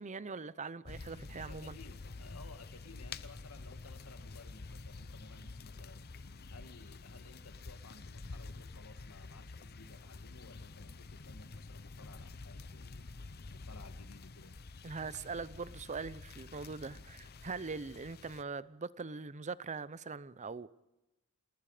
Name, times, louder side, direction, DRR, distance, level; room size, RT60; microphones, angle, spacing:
voice 1, 0.0-1.8 14.8-20.7, right 4 dB, 35° right, 0.7 m, -42 dB
sound 1, 0.8-18.4, left 3 dB, 45° left, 0.8 m, -49 dB
voice 2, 1.4-14.6, left 3 dB, 75° left, 1.9 m, -57 dB
28.0 x 19.5 x 5.0 m
head